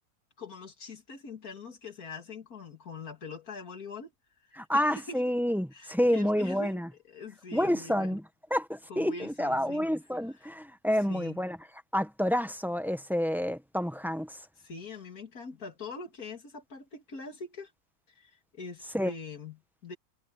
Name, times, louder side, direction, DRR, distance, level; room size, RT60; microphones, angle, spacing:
voice 1, 0.4-4.1 4.4-5.2 5.7-8.2 8.9-9.9 10.3-10.5 11.1-11.4 14.6-17.7 18.1-20.0, left 4 dB, 85° left, 2.9 m, -43 dB
voice 2, 4.6-6.9 7.5-8.2 8.5-11.6 11.9-14.4 18.9-19.1, equal, ahead, 0.9 m, -29 dB
omnidirectional pair, 1.5 m